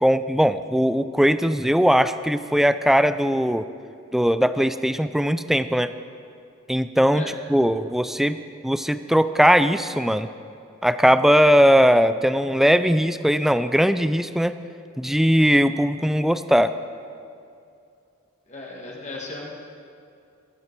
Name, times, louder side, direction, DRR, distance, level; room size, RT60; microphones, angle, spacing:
voice 1, 0.0-3.7 4.1-5.9 6.7-7.2 7.5-8.4 8.6-10.3 10.8-14.6 15.0-16.8, equal, ahead, 12 dB, 0.3 m, -19 dB
voice 2, 18.5-19.5, left 2 dB, 35° left, -2 dB, 1.7 m, -36 dB
22.0 x 9.0 x 4.6 m, 2.5 s
head